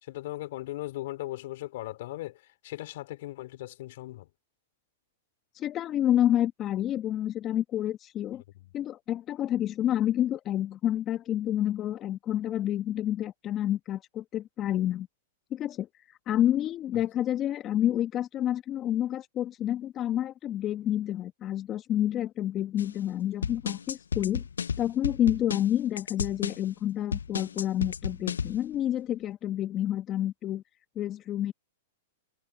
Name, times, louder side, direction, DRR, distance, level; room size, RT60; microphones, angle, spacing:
voice 1, 0.0-4.3 8.5-8.7, left 16 dB, 60° left, 2.7 m, -38 dB
voice 2, 5.5-8.4 8.7-15.1 15.5-24.4 24.8-30.6 31.0-31.5, left 11 dB, 30° left, 1.2 m, -29 dB
sound 1, 22.8-22.9 23.4-26.6 27.1-28.6, left 6 dB, 90° left, 0.3 m, -33 dB
hypercardioid pair, 120°, 0 cm